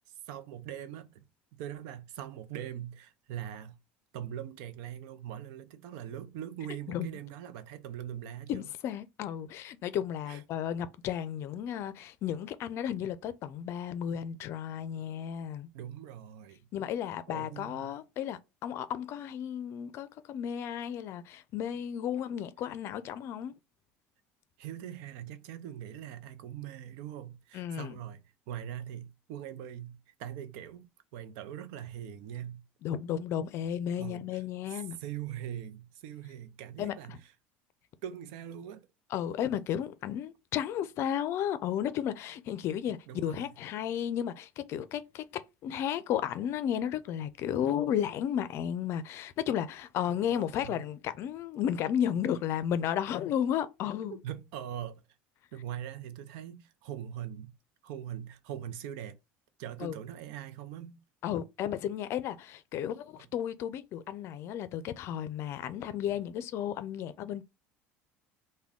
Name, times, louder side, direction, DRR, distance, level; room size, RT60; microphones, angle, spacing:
voice 1, 0.3-1.2 1.5-3.8 4.1-8.7 10.3-10.4 15.7-16.7 17.3-18.0 24.6-32.6 34.0-34.4 34.7-37.3 38.0-38.9 43.1-43.5 50.1-50.8 54.1-55.0 55.5-57.5 57.8-59.2 59.6-61.0, right 10 dB, 75° right, 0.5 m, -42 dB
voice 2, 8.5-15.7 16.7-23.5 27.5-28.0 32.8-35.0 36.8-37.2 39.1-54.2 59.8-59.9 61.2-67.4, left 9 dB, 55° left, 0.5 m, -33 dB
3.5 x 2.2 x 3.5 m
supercardioid pair, 110°, 5 cm